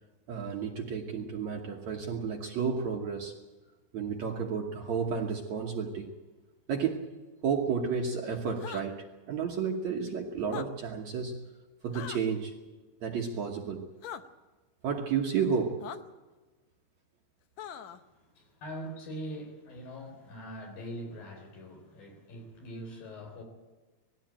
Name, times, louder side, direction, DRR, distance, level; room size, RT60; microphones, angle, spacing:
voice 1, 0.3-3.4 3.9-6.1 6.7-7.1 7.4-11.4 11.8-12.6 13.0-13.9 14.8-16.0, right 6 dB, 60° right, 1 dB, 2.1 m, -32 dB
sound 1, 8.6-8.8 10.4-10.7 11.9-12.2 14.0-14.2 15.8-16.0 17.6-18.0, left 9 dB, 90° left, 1.5 m, -41 dB
voice 2, 17.6-23.4, equal, 65° left, 3 dB, 5.5 m, -43 dB
20.0 x 15.5 x 8.9 m, 1.2 s
omnidirectional pair, 4.4 m